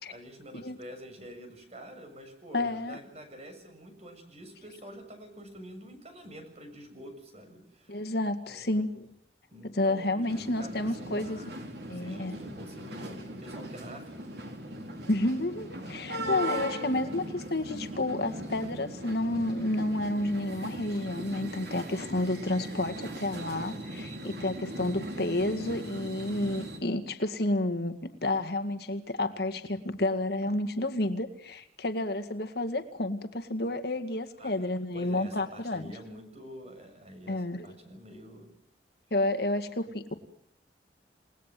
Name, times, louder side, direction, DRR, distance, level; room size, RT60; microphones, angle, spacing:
voice 1, 0.1-8.0 8.5-8.8 9.5-14.2 15.8-16.1 34.4-34.5 34.9-38.5, equal, 35° right, 6 dB, 6.9 m, -47 dB
voice 2, 2.5-3.0 7.9-9.1 9.6-11.4 11.9-12.4 15.1-35.9 37.3-37.8 39.1-40.1, left 1 dB, 60° left, 8 dB, 2.0 m, -30 dB
sound 1, 10.3-26.8, right 1 dB, 65° right, 4.9 m, -39 dB
29.5 x 19.5 x 7.6 m, 0.68 s
head